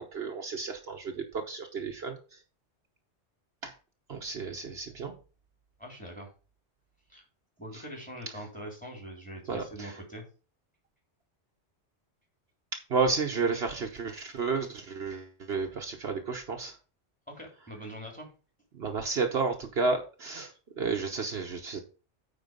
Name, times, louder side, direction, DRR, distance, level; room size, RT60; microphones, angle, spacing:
voice 1, 0.0-2.4 3.6-3.7 4.1-5.2 9.5-10.0 12.9-16.8 18.7-21.8, right 4 dB, 60° right, 3 dB, 1.2 m, -32 dB
voice 2, 5.8-6.3 7.1-7.2 7.6-10.2 17.3-18.3, equal, 5° left, 1 dB, 3.5 m, -43 dB
9.2 x 4.5 x 5.2 m, 0.34 s
omnidirectional pair, 1.2 m